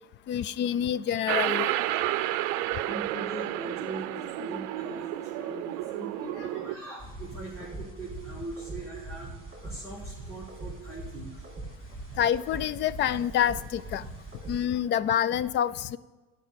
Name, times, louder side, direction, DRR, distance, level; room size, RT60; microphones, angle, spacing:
voice 1, 0.3-1.7 12.2-14.1 14.5-16.0, left 10 dB, 35° left, 18 dB, 0.4 m, -27 dB
sound 1, 1.3-6.7, right 15 dB, 60° right, 0.6 m, -31 dB
voice 2, 2.8-9.3 9.6-11.4, right 2 dB, 10° left, -8 dB, 3.0 m, -40 dB
sound 2, 7.0-14.7, right 2 dB, 20° right, 3.0 m, -42 dB
11.5 x 5.3 x 8.0 m, 1.2 s
supercardioid pair, 130°, 33 cm